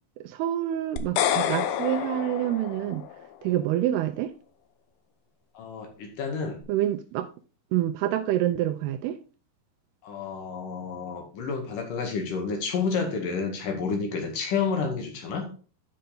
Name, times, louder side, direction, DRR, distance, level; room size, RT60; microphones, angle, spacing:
voice 1, 0.2-3.0 3.4-4.3 6.7-7.3 7.7-9.2, right 12 dB, 85° right, 7 dB, 2.6 m, -27 dB
sound 1, 1.0-3.3, left 9 dB, 80° left, 2.4 m, -28 dB
voice 2, 5.5-6.6 10.0-15.5, left 5 dB, 60° left, 3 dB, 3.2 m, -30 dB
10.5 x 5.6 x 3.9 m, 0.37 s
omnidirectional pair, 4.7 m